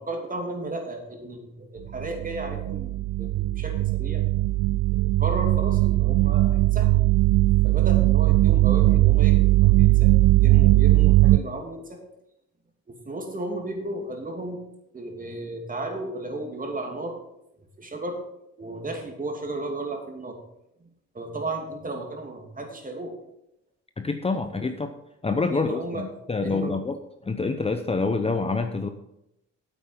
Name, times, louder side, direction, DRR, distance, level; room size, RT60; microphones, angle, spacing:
voice 1, 0.0-2.9 3.2-4.2 4.9-7.0 7.6-12.0 12.9-14.6 14.9-17.2 17.8-18.2 18.6-20.4 20.8-20.9 21.1-23.2 25.5-26.1 26.4-26.8, right 2 dB, 25° right, 3 dB, 2.6 m, -34 dB
sound 1, 2.0-11.4, right 18 dB, 70° right, 0.4 m, -19 dB
voice 2, 24.0-24.9 25.2-27.0 27.2-28.9, left 3 dB, 20° left, 7 dB, 0.8 m, -26 dB
9.2 x 8.2 x 5.7 m, 0.82 s
cardioid pair, 90°, 30 cm